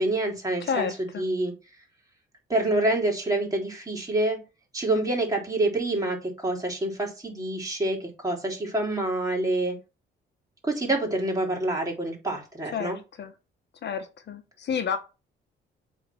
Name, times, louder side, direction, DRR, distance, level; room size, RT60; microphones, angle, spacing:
voice 1, 0.0-0.9 1.2-1.5 2.5-4.4 4.7-9.8 10.6-13.0, right 2 dB, 15° right, -1 dB, 3.9 m, -27 dB
voice 2, 0.6-1.2 12.7-13.3 13.8-15.0, left 7 dB, 60° left, 8 dB, 1.3 m, -30 dB
7.9 x 3.9 x 6.3 m, 0.30 s
cardioid pair, 90°, 20 cm